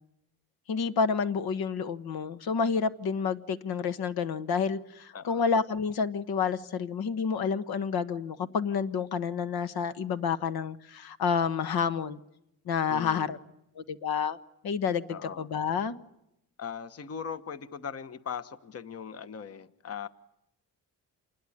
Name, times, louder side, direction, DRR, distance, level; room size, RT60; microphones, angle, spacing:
voice 1, 0.7-12.2 12.7-13.4 13.8-14.4 14.6-16.0, left 6 dB, 75° left, 12 dB, 1.5 m, -29 dB
voice 2, 12.9-13.4 15.1-15.5 16.6-20.1, left 7 dB, 40° left, 13 dB, 1.2 m, -39 dB
28.0 x 21.0 x 9.9 m, 0.83 s
cardioid pair, 115°, 37 cm